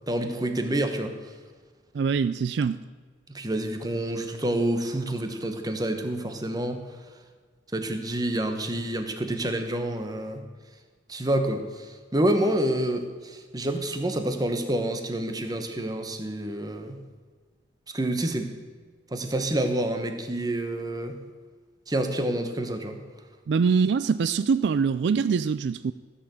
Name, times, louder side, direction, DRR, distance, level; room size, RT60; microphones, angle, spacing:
voice 1, 0.1-1.1 3.3-6.8 7.7-10.4 11.1-11.9 12.1-17.0 17.9-18.5 19.1-21.2 21.9-23.0, right 1 dB, 20° right, 6 dB, 1.1 m, -28 dB
voice 2, 1.9-2.8 23.5-25.9, right 5 dB, 70° right, 14 dB, 0.3 m, -23 dB
14.5 x 6.9 x 7.6 m, 1.5 s
head